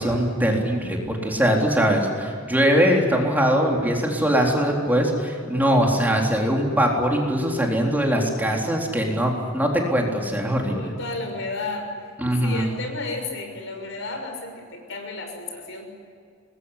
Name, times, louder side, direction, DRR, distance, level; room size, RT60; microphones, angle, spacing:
voice 1, 0.0-10.9 12.2-12.7, equal, 10° right, 0 dB, 3.8 m, -21 dB
voice 2, 10.6-11.9 12.4-15.9, left 3 dB, 65° left, 4 dB, 6.3 m, -33 dB
25.0 x 21.5 x 10.0 m, 2.3 s
head